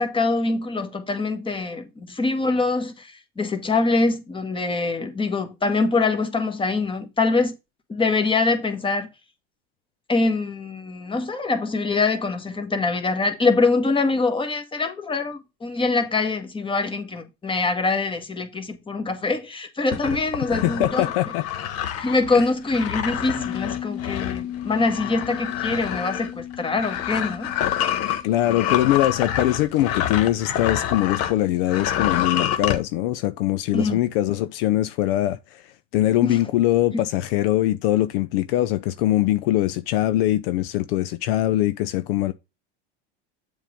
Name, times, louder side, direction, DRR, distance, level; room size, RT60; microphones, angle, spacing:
voice 1, 0.0-7.6 7.9-9.1 10.1-21.1 22.0-27.5 33.7-34.0 36.2-36.4 36.9-37.0, left 3 dB, 15° left, 1.6 m, -24 dB
sound 1, 19.9-31.4 31.7-32.8, left 10 dB, 50° left, 1.3 m, -27 dB
voice 2, 20.6-21.4 22.3-22.4 28.2-35.6 35.9-42.3, left 14 dB, 70° left, 0.6 m, -22 dB
Bass guitar, 23.4-29.6, left 11 dB, 35° left, 1.7 m, -36 dB
7.3 x 3.8 x 5.2 m
supercardioid pair, 110°, 30 cm